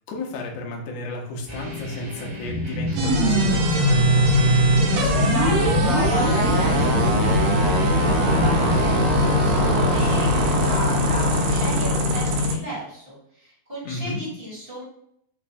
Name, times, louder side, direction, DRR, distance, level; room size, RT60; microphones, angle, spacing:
voice 1, 0.1-4.3 13.8-14.2, left 2 dB, 80° left, 0 dB, 1.4 m, -32 dB
sound 1, 1.5-10.5, equal, 60° right, 0.5 m, -33 dB
sound 2, 3.0-12.5, equal, 80° right, 2.3 m, -20 dB
voice 2, 4.7-14.8, right 1 dB, 30° right, -8 dB, 1.1 m, -34 dB
5.5 x 2.3 x 4.1 m, 0.70 s
omnidirectional pair, 4.1 m